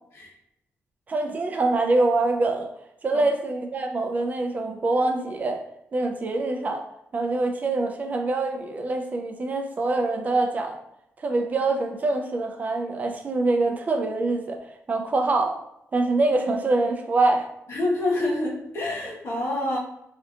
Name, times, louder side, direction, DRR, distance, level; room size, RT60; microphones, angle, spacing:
voice 1, 1.1-2.7 3.0-5.6 5.9-6.8 7.1-10.8 11.2-14.6 14.9-15.6 15.9-17.5, right 2 dB, 30° right, 4 dB, 0.4 m, -24 dB
voice 2, 17.7-19.8, left 1 dB, 60° left, -4 dB, 1.1 m, -27 dB
3.4 x 2.7 x 2.4 m, 0.80 s
wide cardioid pair, 155°, 5 cm